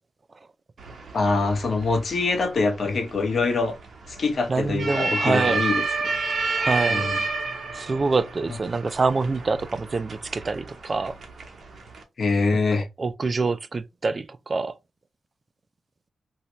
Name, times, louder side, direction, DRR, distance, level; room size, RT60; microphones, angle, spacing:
sound 1, 0.8-12.0, right 3 dB, 55° right, 1.0 m, -30 dB
voice 1, 1.1-3.7 4.1-6.1 6.9-7.2 12.2-12.9, left 3 dB, 55° left, 0.9 m, -24 dB
voice 2, 4.5-5.6 6.6-7.1 7.7-11.1 12.5-14.7, right 4 dB, 35° right, 0.3 m, -26 dB
2.8 x 2.7 x 3.1 m
cardioid pair, 105°, 0 cm